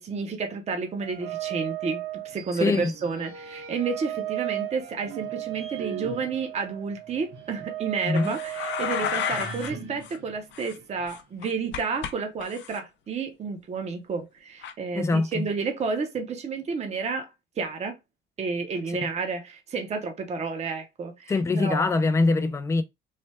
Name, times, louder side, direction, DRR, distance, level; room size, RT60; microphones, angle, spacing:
voice 1, 0.0-17.3 17.6-18.0 18.4-21.9, right 4 dB, 30° right, 0.7 m, -31 dB
sound 1, 1.0-9.4, right 14 dB, 85° right, 0.7 m, -36 dB
sound 2, 2.3-4.1 4.7-7.7 8.1-8.2 9.3-11.4, right 5 dB, 70° right, 1.3 m, -42 dB
voice 2, 2.6-2.9 8.0-8.3 15.0-15.4 21.3-22.8, left 3 dB, 15° left, 0.3 m, -23 dB
sound 3, 8.1-9.7 10.0-10.2 10.5-12.1 12.4-12.8 14.6-14.7, left 9 dB, 60° left, 0.6 m, -32 dB
3.2 x 2.2 x 4.2 m
cardioid pair, 135°, 21 cm